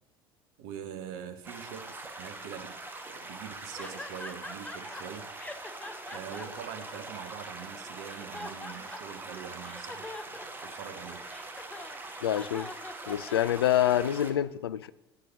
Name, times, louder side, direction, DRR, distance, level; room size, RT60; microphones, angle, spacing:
voice 1, 0.6-5.3 6.1-11.3, right 8 dB, 55° right, 1.0 m, -44 dB
sound 1, 1.4-14.3, right 2 dB, 15° right, 1.4 m, -43 dB
sound 2, 3.8-5.0 5.4-7.5 8.0-9.2 9.6-13.9, left 2 dB, 10° left, 0.7 m, -44 dB
voice 2, 12.2-12.7 13.1-14.9, left 11 dB, 75° left, 0.4 m, -26 dB
8.5 x 6.9 x 4.9 m
figure-of-eight pair, 65°, 13 cm